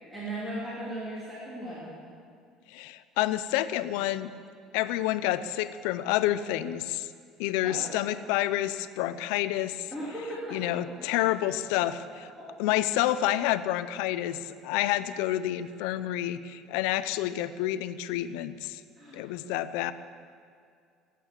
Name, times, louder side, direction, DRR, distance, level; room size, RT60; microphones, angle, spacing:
voice 1, 0.1-1.9 7.6-7.9 9.9-10.6 11.2-11.3 12.4-12.5 19.0-19.2, right 1 dB, 10° right, -9 dB, 3.0 m, -37 dB
voice 2, 2.7-4.3 4.7-7.1 7.4-9.9 10.5-12.3 12.6-18.8 19.1-19.9, left 13 dB, 85° left, 13 dB, 0.6 m, -29 dB
20.0 x 8.4 x 7.4 m, 2.2 s
cardioid pair, 175°, 0 cm